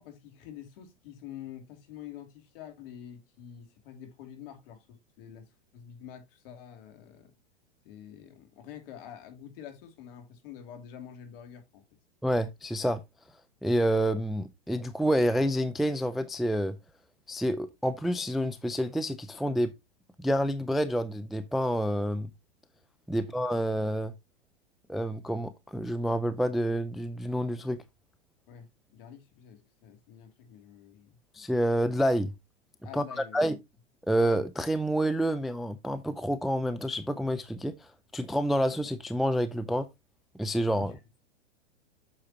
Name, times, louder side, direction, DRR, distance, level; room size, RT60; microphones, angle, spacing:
voice 1, 0.0-5.5 5.7-7.3 7.8-11.8 23.1-23.4 28.5-31.2 32.8-33.4 40.7-41.0, left 9 dB, 55° left, 2.8 m, -47 dB
voice 2, 12.2-13.0 13.6-16.7 17.3-19.7 20.2-22.3 23.1-24.1 24.9-27.8 31.3-32.3 32.9-33.0 33.3-33.6 34.1-37.7 38.1-39.9 40.3-40.9, equal, ahead, 0.5 m, -28 dB
8.7 x 6.5 x 2.9 m
hypercardioid pair, 110°, 33 cm